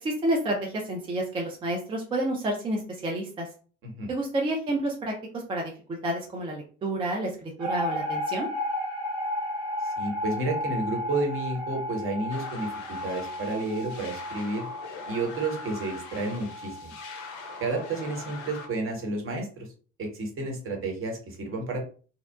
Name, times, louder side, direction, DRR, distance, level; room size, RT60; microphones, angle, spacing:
voice 1, 0.0-3.5 4.1-5.7 6.0-8.5, right 1 dB, 15° right, 0 dB, 0.3 m, -29 dB
sound 1, 7.6-18.8, left 1 dB, 70° right, 1.1 m, -34 dB
voice 2, 10.0-14.7 15.1-16.9 17.6-19.7 20.0-21.8, right 2 dB, 35° right, 1 dB, 0.9 m, -31 dB
sound 2, 12.3-18.7, left 5 dB, 50° left, 0.5 m, -43 dB
2.7 x 2.1 x 2.2 m, 0.39 s
figure-of-eight pair, 55°, 37 cm